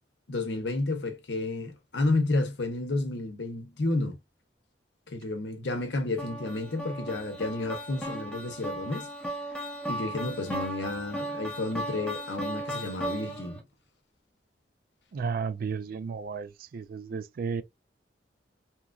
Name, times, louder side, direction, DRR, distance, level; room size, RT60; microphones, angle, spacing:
voice 1, 0.3-4.2 5.1-9.1 9.9-13.6, left 2 dB, 75° left, 0.8 m, -31 dB
sound 1, 6.2-13.6, right 1 dB, 5° left, 0.7 m, -36 dB
voice 2, 15.1-17.6, right 5 dB, 55° right, 0.3 m, -33 dB
2.9 x 2.4 x 2.3 m
head